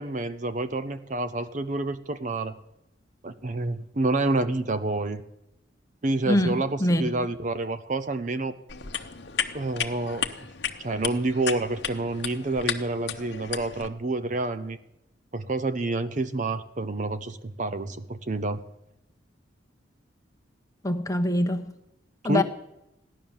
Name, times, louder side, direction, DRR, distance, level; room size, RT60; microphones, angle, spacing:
voice 1, 0.0-2.5 3.2-5.2 6.0-8.6 9.5-10.3 10.8-14.8 15.3-18.6 22.2-22.4, right 2 dB, 40° right, 0.6 m, -28 dB
voice 2, 6.3-7.0 20.8-21.7 22.2-22.4, left 1 dB, 20° left, 1.0 m, -24 dB
sound 1, 8.7-13.9, left 8 dB, 60° left, 0.9 m, -33 dB
16.0 x 11.0 x 7.2 m
head